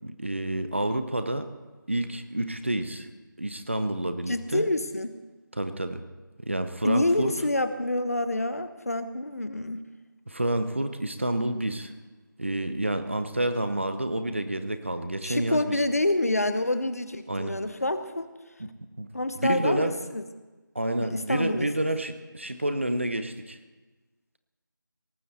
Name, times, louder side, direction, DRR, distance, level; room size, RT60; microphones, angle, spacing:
voice 1, 0.0-1.5 1.9-3.1 3.4-4.7 5.5-6.0 6.4-7.3 10.3-11.9 12.4-15.8 17.3-17.6 18.6-18.7 19.0-19.1 19.4-19.9 20.7-23.6, right 1 dB, 35° right, 10 dB, 0.8 m, -29 dB
voice 2, 4.3-5.1 6.8-9.8 15.2-18.3 19.1-20.2 21.0-21.7, left 1 dB, 45° left, 11 dB, 0.8 m, -27 dB
18.5 x 14.0 x 4.2 m, 1.2 s
figure-of-eight pair, 180°, 11 cm